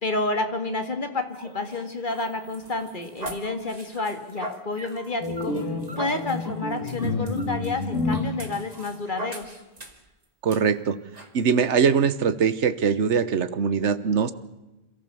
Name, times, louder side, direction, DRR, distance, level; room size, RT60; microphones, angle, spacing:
voice 1, 0.0-5.5 6.0-9.6, left 2 dB, 40° left, 7 dB, 2.1 m, -30 dB
sound 1, 1.4-10.1 10.5-10.6 11.1-11.3, right 1 dB, 30° right, 2.1 m, -40 dB
sound 2, 5.2-8.3, left 2 dB, 75° left, 3.8 m, -29 dB
voice 2, 10.4-11.0 11.3-14.3, right 6 dB, 65° right, 14 dB, 1.3 m, -22 dB
27.0 x 14.5 x 6.9 m, 1.1 s
omnidirectional pair, 1.3 m